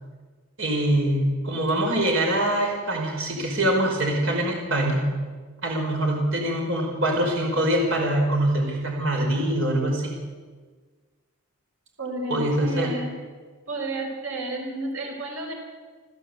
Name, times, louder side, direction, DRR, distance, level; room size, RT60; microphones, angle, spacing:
voice 1, 0.6-5.0 5.6-10.1 12.3-13.0, right 1 dB, 65° right, 0 dB, 5.3 m, -24 dB
voice 2, 12.0-13.1 13.7-15.5, right 1 dB, 85° right, 1 dB, 5.5 m, -31 dB
28.5 x 14.5 x 8.2 m, 1.5 s
head